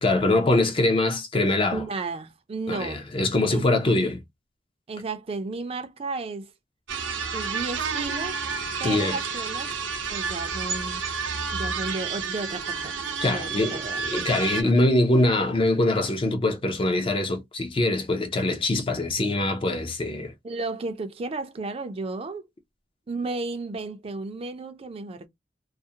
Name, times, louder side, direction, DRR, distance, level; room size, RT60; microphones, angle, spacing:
voice 1, 0.0-1.8 2.7-4.2 8.8-9.2 13.2-20.3, left 2 dB, 30° left, 0.4 m, -23 dB
voice 2, 1.7-3.1 3.5-4.1 4.9-6.5 7.3-8.4 8.8-9.7 10.1-11.1 11.5-13.0 13.3-14.0 20.4-22.4 23.1-25.3, right 3 dB, 30° right, 0.4 m, -33 dB
sound 1, 6.9-14.6, right 5 dB, 75° right, 0.7 m, -30 dB
2.4 x 2.0 x 2.7 m
head